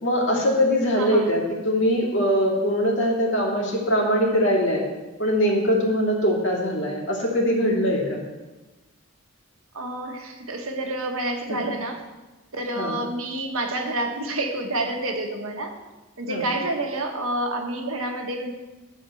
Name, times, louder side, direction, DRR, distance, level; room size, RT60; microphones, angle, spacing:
voice 1, 0.0-4.8 5.2-8.2 11.5-11.6 12.8-13.0 16.3-16.4, equal, 55° left, -3 dB, 2.5 m, -22 dB
voice 2, 1.0-1.3 9.7-12.0 12.5-15.7 16.2-18.5, right 1 dB, 80° right, 3 dB, 1.4 m, -28 dB
11.5 x 4.4 x 7.7 m, 1.1 s
head